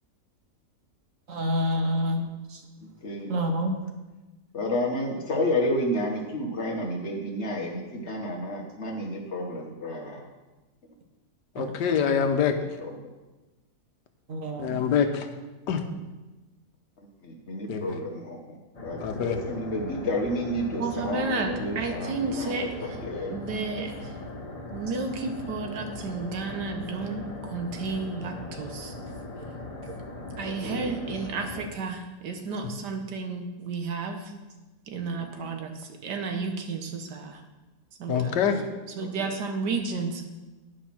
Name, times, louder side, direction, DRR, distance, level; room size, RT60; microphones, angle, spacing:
voice 1, 1.3-2.2 3.3-3.7 11.6-11.7 14.3-14.8, equal, 55° right, 2 dB, 1.4 m, -27 dB
voice 2, 3.0-3.4 4.5-10.3 12.8-12.9 17.5-18.4 18.8-23.3 30.4-30.9 35.4-35.5 38.1-38.7 39.2-39.3, left 1 dB, 45° left, 0 dB, 1.4 m, -31 dB
voice 3, 11.5-12.5 14.6-15.3 15.7-15.8 17.7-17.8 19.0-19.4 38.1-38.6, left 7 dB, 85° left, 6 dB, 1.4 m, -25 dB
sound 1, 18.7-31.7, left 2 dB, 25° left, 1.3 m, -39 dB
voice 4, 20.8-24.1 24.7-28.9 30.4-34.3 34.9-37.4 38.0-38.4 38.9-40.2, right 4 dB, 80° right, 4 dB, 1.6 m, -32 dB
10.5 x 5.2 x 5.8 m, 1.1 s
omnidirectional pair, 1.8 m